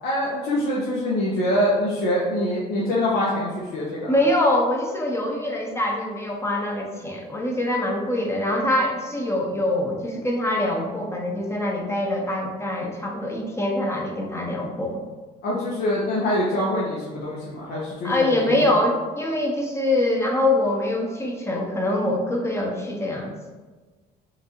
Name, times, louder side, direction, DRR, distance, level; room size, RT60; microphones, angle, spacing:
voice 1, 0.0-4.2 15.4-18.7, left 1 dB, 70° left, -6 dB, 0.9 m, -24 dB
voice 2, 4.1-15.0 18.0-23.3, left 1 dB, 15° left, 0 dB, 0.7 m, -24 dB
5.7 x 2.5 x 2.9 m, 1.3 s
cardioid pair, 110°, 17 cm